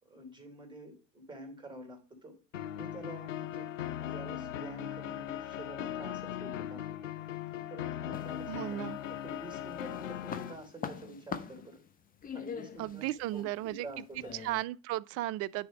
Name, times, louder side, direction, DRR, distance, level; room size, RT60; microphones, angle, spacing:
voice 1, 0.0-2.3 2.7-3.7 4.0-7.0 7.7-8.8 9.1-11.8 12.3-14.3, right 2 dB, 10° right, 3.2 m, -48 dB
sound 1, 2.5-10.5, left 11 dB, 85° left, 0.6 m, -39 dB
sound 2, 8.1-9.1 9.5-14.6, left 7 dB, 25° left, 0.8 m, -43 dB
voice 2, 8.5-9.0 12.8-13.9 14.3-15.7, right 16 dB, 40° right, 0.4 m, -35 dB
10.0 x 3.5 x 5.0 m
figure-of-eight pair, 70°, 37 cm